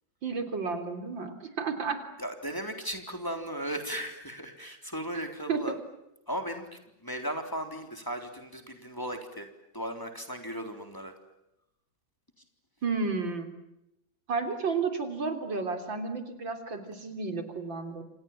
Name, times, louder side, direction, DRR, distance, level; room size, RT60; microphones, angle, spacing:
voice 1, 0.2-2.0 5.5-5.6 12.8-13.5 14.3-18.0, right 4 dB, 75° right, 7 dB, 4.2 m, -32 dB
voice 2, 2.2-5.7 6.3-9.5 9.7-11.1, equal, 10° left, 5 dB, 3.7 m, -36 dB
29.0 x 27.0 x 7.5 m, 0.87 s
omnidirectional pair, 2.1 m